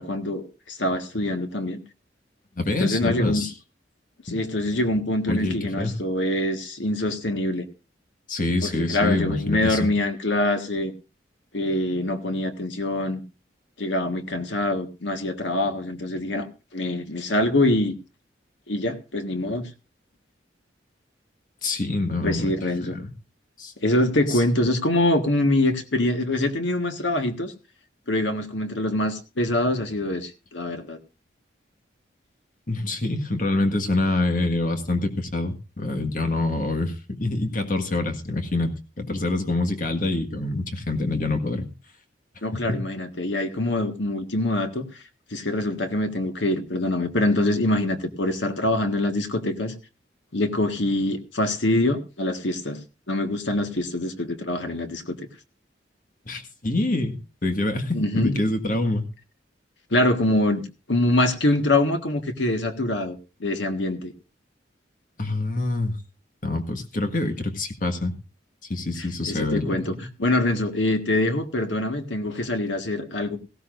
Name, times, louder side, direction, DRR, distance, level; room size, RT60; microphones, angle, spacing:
voice 1, 0.0-1.8 2.8-3.4 4.2-7.7 8.6-10.9 11.5-13.2 13.8-17.9 18.7-19.7 22.2-22.9 23.8-27.5 28.1-31.0 42.4-44.8 45.3-49.7 50.3-52.8 53.1-55.3 57.9-58.4 59.9-60.6 60.9-64.1 69.2-69.9 70.2-73.4, left 1 dB, 75° left, 6 dB, 1.7 m, -24 dB
voice 2, 2.6-3.5 5.3-6.0 8.3-9.9 21.6-22.5 22.8-23.1 23.6-23.7 24.3-24.4 32.7-38.7 39.0-41.7 42.5-42.9 56.2-59.1 65.2-66.0 66.4-68.1 68.7-70.0, left 2 dB, 45° left, 6 dB, 1.7 m, -26 dB
18.5 x 15.0 x 2.6 m, 0.30 s
head